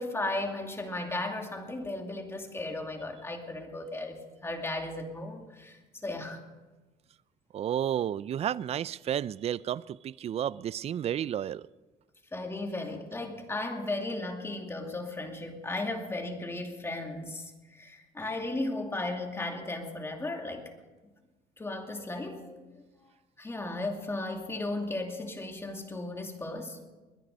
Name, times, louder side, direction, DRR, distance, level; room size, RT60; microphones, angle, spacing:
voice 1, 0.0-6.4 12.3-20.7 21.6-22.7 23.4-26.9, left 2 dB, 15° left, 2.5 m, -35 dB
voice 2, 7.5-11.7, right 10 dB, 40° right, 0.4 m, -32 dB
21.0 x 10.5 x 5.4 m
cardioid pair, 110°, 17 cm